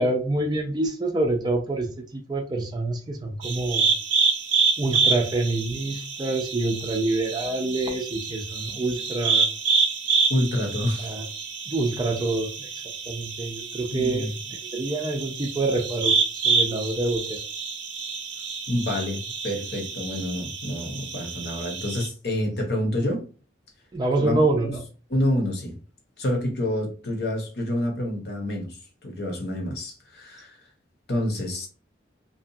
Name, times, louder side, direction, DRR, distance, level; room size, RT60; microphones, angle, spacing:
voice 1, 0.0-3.9 4.8-9.5 11.0-11.3 11.7-12.7 13.1-14.3 14.7-16.1 16.4-17.4 23.9-24.8, right 2 dB, 20° right, 0.4 m, -26 dB
sound 1, 3.4-22.1, right 5 dB, 85° right, 0.6 m, -27 dB
voice 2, 10.3-11.1 13.9-14.3 18.7-23.3 24.2-24.7 25.1-25.8 26.2-28.8 29.0-30.6 31.1-31.7, left 1 dB, 60° left, 0.8 m, -28 dB
2.6 x 2.3 x 2.6 m
head